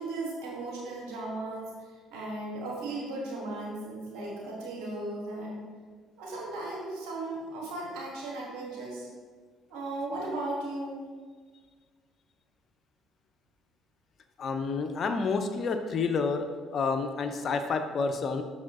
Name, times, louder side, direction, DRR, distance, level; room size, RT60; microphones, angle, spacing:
voice 1, 0.0-1.7 2.1-5.6 6.2-9.1 9.7-11.0, right 2 dB, 70° right, -3 dB, 1.6 m, -36 dB
voice 2, 14.4-16.5 16.7-18.4, left 4 dB, 50° left, 7 dB, 0.6 m, -29 dB
6.3 x 4.2 x 3.6 m, 1.5 s
hypercardioid pair, 55°, 0 cm